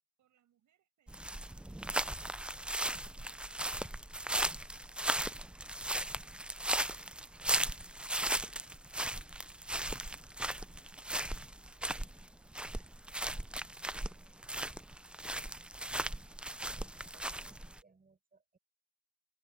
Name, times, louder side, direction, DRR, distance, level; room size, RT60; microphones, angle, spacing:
voice 1, 0.2-1.8 2.4-4.5 4.9-6.4 7.6-8.4 8.8-13.3 14.0-15.1, right 11 dB, 75° right, 7.3 m, -77 dB
sound 1, 1.1-17.8, right 1 dB, 5° right, 0.3 m, -37 dB
voice 2, 2.6-2.9 14.5-14.7 16.7-18.6, right 4 dB, 30° right, 7.0 m, -68 dB
open air
cardioid pair, 90°, 30 cm